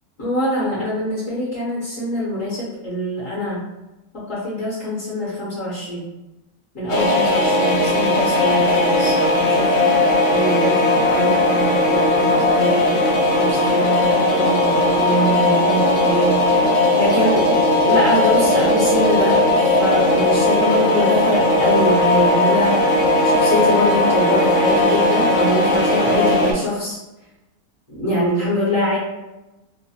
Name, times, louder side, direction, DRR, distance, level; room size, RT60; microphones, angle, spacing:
voice 1, 0.2-3.6 4.1-6.1 6.7-9.7 10.3-12.9 13.4-16.4 16.9-17.5 17.8-22.9 23.2-27.0 27.9-29.0, equal, 55° left, -8 dB, 1.1 m, -24 dB
sound 1, 6.9-26.5, left 1 dB, 75° left, 0.6 m, -17 dB
3.1 x 2.1 x 2.7 m, 0.98 s
omnidirectional pair, 1.9 m